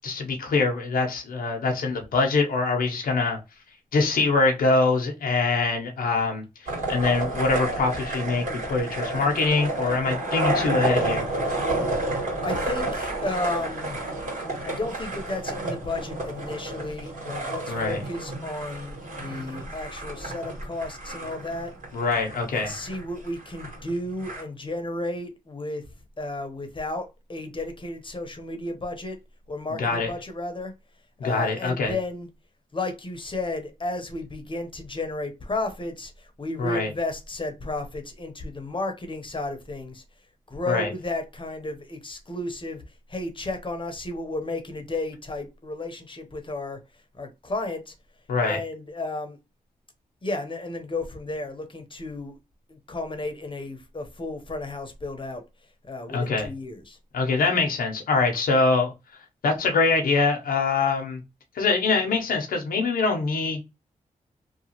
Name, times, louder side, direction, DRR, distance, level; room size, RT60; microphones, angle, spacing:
voice 1, 0.0-3.4 3.9-11.2 17.7-18.0 21.9-22.7 29.8-30.1 31.2-31.9 36.6-36.9 40.7-40.9 48.3-48.6 56.1-56.5 57.1-58.9 59.4-61.2 61.5-63.6, left 3 dB, 90° left, 0.7 m, -24 dB
sound 1, 6.7-24.4, right 2 dB, 60° right, 1.7 m, -30 dB
voice 2, 12.4-14.0 14.6-21.7 22.5-25.8 26.2-29.2 29.5-30.7 31.2-32.3 32.7-40.0 40.5-42.8 43.1-46.8 47.1-47.9 48.4-49.4 50.2-52.4 52.7-55.4 55.8-57.0, left 2 dB, 35° left, 0.8 m, -33 dB
2.9 x 2.3 x 2.8 m
cardioid pair, 60°, 15 cm